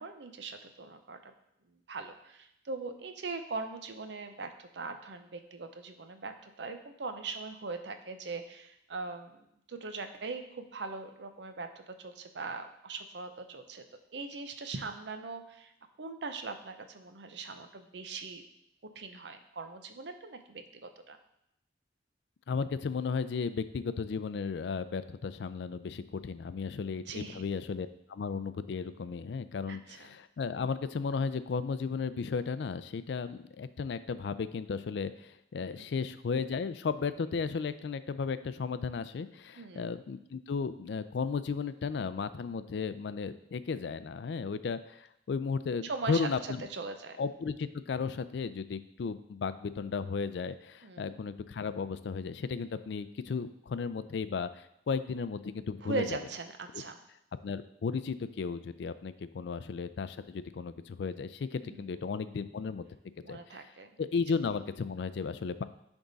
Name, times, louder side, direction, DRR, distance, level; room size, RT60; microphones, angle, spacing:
voice 1, 0.0-1.3 1.7-13.8 14.1-15.7 16.0-18.4 19.0-21.2 27.0-27.4 29.7-30.1 35.8-35.9 39.6-39.9 45.8-46.2 46.7-47.2 50.8-51.1 55.8-57.0 61.6-61.8 63.2-63.9 64.3-64.4, right 4 dB, 65° right, 7 dB, 0.6 m, -41 dB
voice 2, 22.5-46.7 47.2-56.2 56.7-56.8 57.4-62.9 63.3-63.6 64.0-65.6, left 5 dB, 65° left, 13 dB, 0.4 m, -35 dB
10.0 x 3.6 x 4.0 m, 0.78 s
head